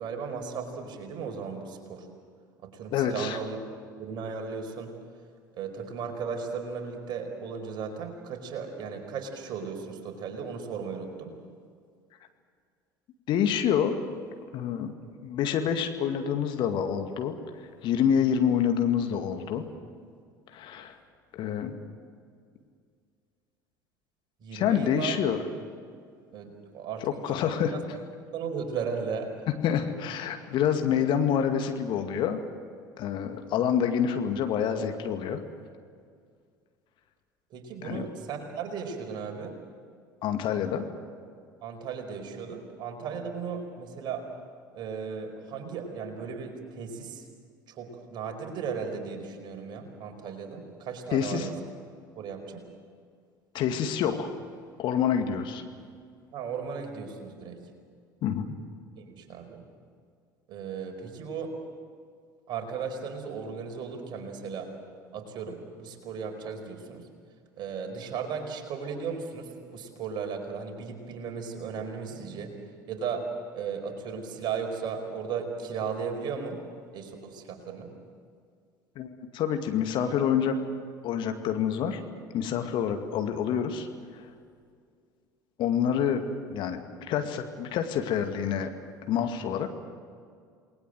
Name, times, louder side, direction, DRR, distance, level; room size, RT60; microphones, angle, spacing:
voice 1, 0.0-2.1 2.6-3.6 4.0-4.9 5.5-11.3 24.4-25.2 26.3-27.8 28.3-29.3 37.5-39.6 41.6-44.2 44.7-47.2 47.7-51.5 52.1-52.6 56.3-57.6 59.0-59.6 60.5-61.5 62.5-64.7 65.1-67.1 67.6-72.5 72.9-73.2 73.5-76.6 76.9-77.9, right 6 dB, 45° right, 4 dB, 4.9 m, -36 dB
voice 2, 2.9-3.4 13.3-13.9 14.5-14.9 15.2-19.6 20.5-21.0 21.3-21.7 24.5-25.4 27.0-27.7 29.6-32.4 33.0-35.4 37.8-38.0 40.2-40.8 51.1-51.5 53.5-54.3 54.8-55.6 58.2-58.5 79.0-80.6 81.0-82.0 82.3-83.9 84.1-84.3 85.6-88.7 89.1-89.7, left 8 dB, 50° left, 6 dB, 2.2 m, -27 dB
28.5 x 20.5 x 7.8 m, 2.1 s
figure-of-eight pair, 65°, 10 cm